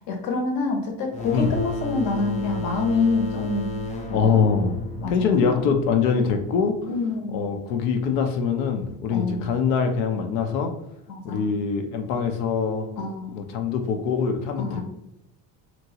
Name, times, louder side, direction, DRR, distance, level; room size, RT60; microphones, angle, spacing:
voice 1, 0.1-3.7 4.1-4.5 5.0-5.7 6.9-7.4 9.1-9.5 11.1-11.5 13.0-13.4 14.6-14.8, left 3 dB, 55° left, 3 dB, 0.8 m, -27 dB
sound 1, 1.1-6.6, left 1 dB, 20° left, 0.4 m, -33 dB
voice 2, 4.1-4.8 5.1-6.8 7.3-10.7 11.2-12.9 13.3-14.8, left 6 dB, 85° left, 5 dB, 0.6 m, -23 dB
2.9 x 2.6 x 2.8 m, 0.83 s
cardioid pair, 125°, 44 cm